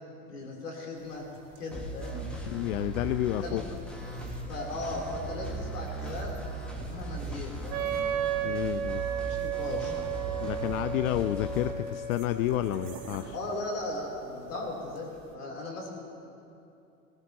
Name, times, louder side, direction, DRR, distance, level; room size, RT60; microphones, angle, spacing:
voice 1, 0.3-1.2 1.6-2.3 3.4-3.6 4.5-6.4 6.8-8.0 9.2-10.3 13.3-15.9, left 2 dB, 80° left, -2 dB, 3.8 m, -37 dB
sound 1, 0.9-15.3, right 3 dB, 45° right, 3.7 m, -53 dB
sound 2, 1.7-11.7, right 2 dB, ahead, 1.9 m, -38 dB
voice 2, 2.5-3.6 8.4-9.0 10.4-13.3, left 14 dB, 65° left, 11 dB, 0.6 m, -30 dB
Wind instrument woodwind instrument, 7.7-13.3, right 8 dB, 60° right, 1.2 m, -34 dB
19.5 x 18.5 x 3.0 m, 2.7 s
hypercardioid pair, 90°, 45 cm